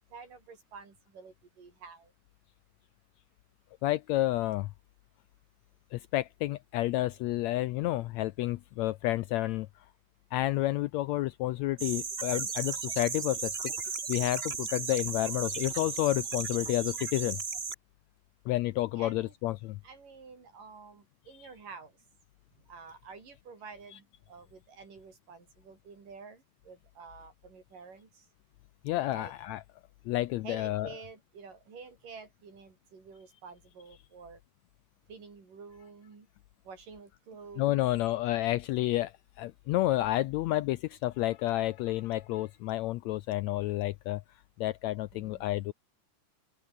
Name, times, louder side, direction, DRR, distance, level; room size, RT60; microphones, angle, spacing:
voice 1, 0.1-2.1 18.9-19.3 19.8-21.9 22.7-26.4 26.7-28.1 29.1-29.3 30.4-34.4 35.1-36.3 36.7-37.7 45.1-45.5, right 5 dB, 80° right, 7.1 m, -49 dB
voice 2, 3.8-4.7 5.9-9.7 10.3-13.5 14.1-17.4 18.5-19.8 21.4-21.5 28.8-29.6 30.1-30.9 37.6-39.1 39.4-44.2 44.6-45.7, left 16 dB, 80° left, 1.6 m, -30 dB
sound 1, 11.8-17.7, right 5 dB, 50° right, 0.7 m, -35 dB
open air
omnidirectional pair, 3.7 m